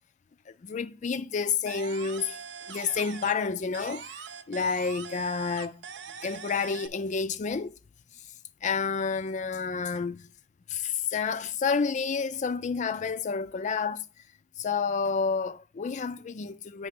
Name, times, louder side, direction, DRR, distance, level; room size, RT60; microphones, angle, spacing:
voice 1, 0.5-2.4 2.6-5.8 6.2-7.8 8.6-10.2 10.7-14.0 14.6-16.9, left 5 dB, 40° left, 0.4 m, -30 dB
sound 1, 1.7-3.5 3.7-6.9, right 7 dB, 70° right, 0.6 m, -42 dB
8.4 x 3.1 x 5.9 m
head